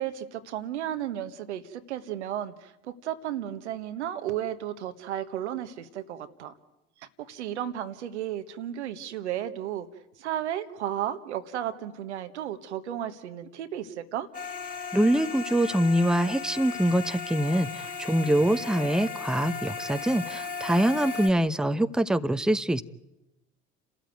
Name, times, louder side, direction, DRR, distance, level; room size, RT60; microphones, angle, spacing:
voice 1, 0.0-6.5 7.2-9.9 10.2-14.3, right 11 dB, 85° right, 9 dB, 1.3 m, -33 dB
sound 1, 14.3-21.3, left 5 dB, 25° left, 4.0 m, -36 dB
voice 2, 14.9-22.8, right 1 dB, ahead, 12 dB, 0.8 m, -24 dB
30.0 x 13.5 x 9.3 m, 0.97 s
hypercardioid pair, 70°, 33 cm